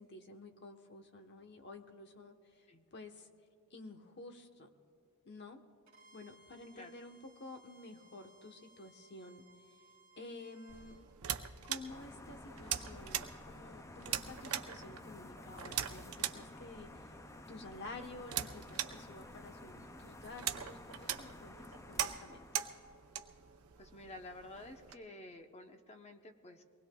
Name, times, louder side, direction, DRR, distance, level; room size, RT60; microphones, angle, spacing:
voice 1, 0.0-3.3 3.7-4.7 5.2-5.6 6.1-9.8 10.2-11.0 11.6-17.1 17.5-22.5, left 2 dB, 50° left, 5 dB, 1.0 m, -51 dB
Bowed string instrument, 5.9-11.0, right 1 dB, 40° right, 1.8 m, -64 dB
sound 1, 10.7-24.9, right 10 dB, 75° right, 0.7 m, -42 dB
sound 2, 11.9-23.1, left 2 dB, 15° left, 0.3 m, -53 dB
voice 2, 23.8-26.6, left 2 dB, 30° left, 5 dB, 0.8 m, -51 dB
24.0 x 19.5 x 2.3 m, 2.4 s
head